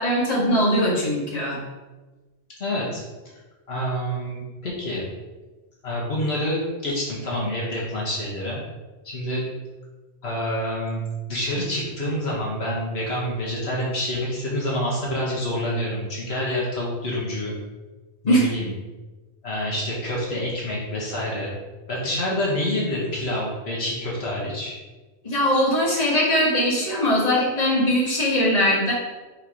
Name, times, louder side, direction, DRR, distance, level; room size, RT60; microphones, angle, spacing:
voice 1, 0.0-1.6 18.3-18.5 25.2-28.9, equal, 35° left, -6 dB, 1.7 m, -21 dB
voice 2, 2.6-3.0 3.7-5.0 5.8-8.6 9.0-9.4 10.2-11.0 11.3-17.5 18.2-18.7 19.4-21.5 21.9-24.7, left 1 dB, 70° left, -5 dB, 1.6 m, -27 dB
4.8 x 4.4 x 4.9 m, 1.2 s
omnidirectional pair, 1.1 m